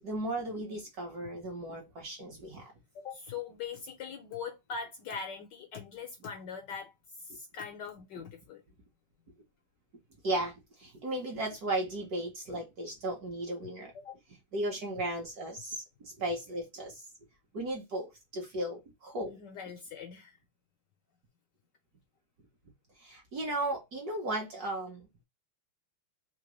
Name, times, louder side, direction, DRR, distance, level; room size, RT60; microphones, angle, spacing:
voice 1, 0.0-2.7 10.2-13.9 14.5-17.0 17.5-19.4 23.0-25.2, right 1 dB, 55° right, 1.3 m, -35 dB
voice 2, 2.9-8.6 13.9-14.1 19.3-20.4, left 6 dB, 65° left, 1.1 m, -42 dB
3.9 x 2.9 x 3.0 m
omnidirectional pair, 2.4 m